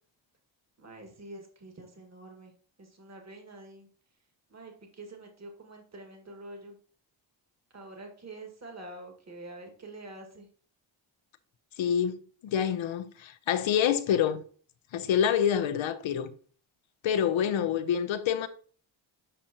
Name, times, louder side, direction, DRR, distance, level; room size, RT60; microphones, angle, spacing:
voice 1, 0.8-2.5 2.8-3.9 4.5-6.8 7.7-10.5, right 2 dB, 35° right, 1.8 m, -46 dB
voice 2, 11.8-14.4 14.9-16.3 17.0-18.5, left 9 dB, 80° left, 0.8 m, -27 dB
7.6 x 5.1 x 2.9 m
cardioid pair, 75°, 46 cm